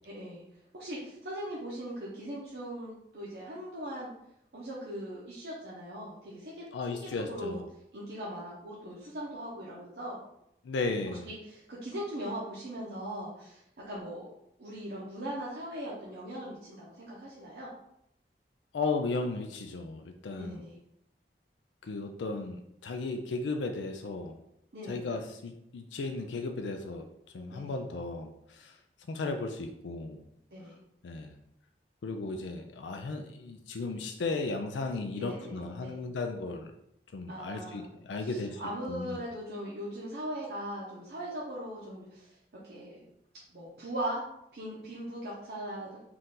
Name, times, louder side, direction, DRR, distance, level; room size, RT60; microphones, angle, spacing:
voice 1, 0.0-0.4 0.7-4.1 4.5-6.6 7.0-7.6 7.9-10.2 11.1-14.3 14.6-17.7 20.4-20.8 24.7-25.1 27.5-27.8 30.5-30.8 35.2-36.0 37.3-37.8 38.2-42.4 42.6-43.0 43.5-44.3 44.5-45.9, right 1 dB, 65° right, -7 dB, 0.8 m, -39 dB
voice 2, 6.7-7.6 10.6-11.3 18.7-20.6 21.8-24.4 24.9-27.1 27.3-28.7 29.1-30.2 31.0-31.3 32.0-36.7 37.1-38.6 38.9-39.2, left 3 dB, 90° left, 5 dB, 0.4 m, -35 dB
4.4 x 2.5 x 3.8 m, 0.77 s
head